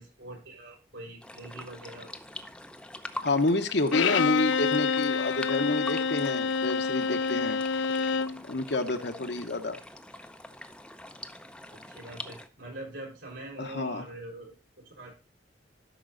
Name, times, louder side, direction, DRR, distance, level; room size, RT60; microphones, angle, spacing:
voice 1, 0.0-2.1 11.7-15.1, right 1 dB, 80° right, -1 dB, 5.9 m, -44 dB
sound 1, 1.2-12.5, left 1 dB, 5° left, 0.7 m, -44 dB
voice 2, 3.2-7.6 8.5-9.8 13.6-14.1, left 2 dB, 60° left, 7 dB, 1.2 m, -29 dB
Bowed string instrument, 3.9-8.4, left 5 dB, 80° left, 0.5 m, -27 dB
12.5 x 6.1 x 4.0 m, 0.32 s
head